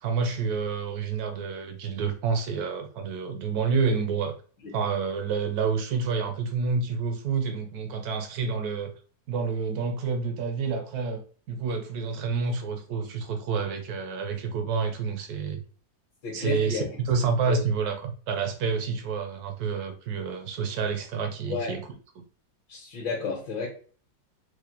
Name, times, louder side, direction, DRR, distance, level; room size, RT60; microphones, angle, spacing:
voice 1, 0.0-4.3 4.7-8.9 9.3-11.2 11.5-15.6 16.3-21.8 22.2-22.3, right 5 dB, 70° right, 0.9 m, -28 dB
voice 2, 16.2-16.9 17.2-17.6 21.5-21.8 22.7-23.7, left 5 dB, 75° left, 1.8 m, -32 dB
4.7 x 2.1 x 2.8 m
omnidirectional pair, 2.0 m